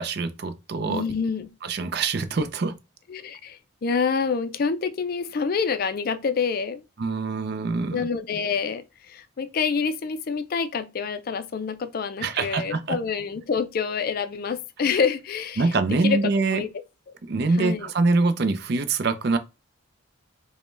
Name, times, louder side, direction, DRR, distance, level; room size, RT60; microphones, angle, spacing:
voice 1, 0.0-1.0 1.6-2.8 7.0-8.1 12.2-13.0 15.6-16.6 17.2-19.4, right 3 dB, 55° right, 0.5 m, -24 dB
voice 2, 0.8-1.5 3.1-6.8 7.9-15.7 16.0-16.7 17.6-17.9, left 5 dB, 45° left, 0.4 m, -27 dB
5.1 x 2.1 x 3.2 m
head